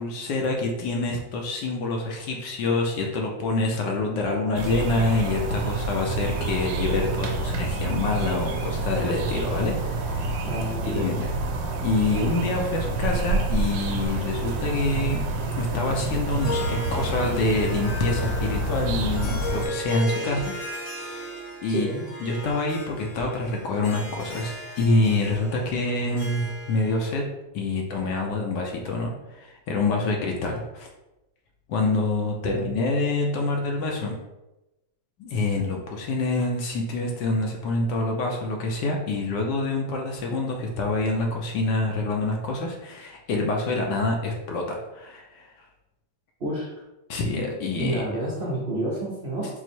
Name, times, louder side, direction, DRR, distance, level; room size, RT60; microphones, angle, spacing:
voice 1, 0.0-11.3 11.8-15.2 15.6-20.6 21.1-21.3 21.6-21.9 22.2-27.2 27.5-30.9 31.7-34.2 35.2-45.5 47.1-48.0, left 2 dB, 70° left, 1 dB, 1.2 m, -26 dB
sound 1, 4.5-19.7, right 2 dB, 75° right, 1.2 m, -28 dB
voice 2, 10.4-11.1 21.7-22.0 32.4-32.8 46.4-46.7 47.7-49.5, right 1 dB, 50° right, -7 dB, 0.7 m, -29 dB
Harp, 16.2-27.1, left 1 dB, 90° left, 2.3 m, -36 dB
4.5 x 2.1 x 4.2 m, 0.97 s
omnidirectional pair, 2.1 m